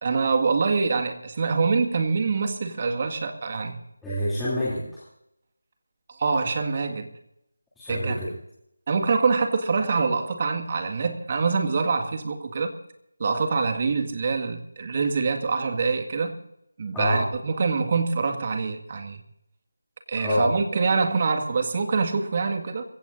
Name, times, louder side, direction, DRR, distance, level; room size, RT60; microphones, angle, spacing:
voice 1, 0.0-3.8 6.1-7.1 7.9-8.2 8.9-12.7 13.2-16.4 16.8-19.2 20.1-22.8, right 4 dB, 35° right, 5 dB, 1.9 m, -25 dB
voice 2, 4.0-5.0 7.8-8.3 16.9-17.2 20.2-20.5, left 1 dB, 5° left, -13 dB, 3.1 m, -26 dB
29.0 x 16.0 x 2.7 m, 0.81 s
figure-of-eight pair, 165°, 0 cm